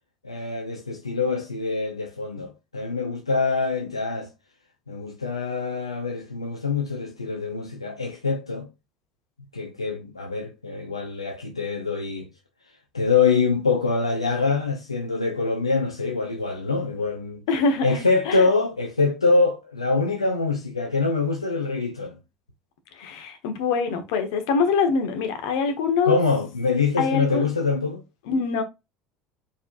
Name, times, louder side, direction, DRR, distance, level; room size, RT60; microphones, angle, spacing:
voice 1, 0.2-4.3 4.9-8.7 9.5-12.3 12.9-17.4 17.8-22.2 26.0-28.0, left 4 dB, 90° left, 0.7 m, -24 dB
voice 2, 17.5-18.4 23.0-26.2 27.0-27.4 28.3-28.6, left 5 dB, 65° left, 1.1 m, -24 dB
4.6 x 4.2 x 2.5 m
figure-of-eight pair, 65°, 3 cm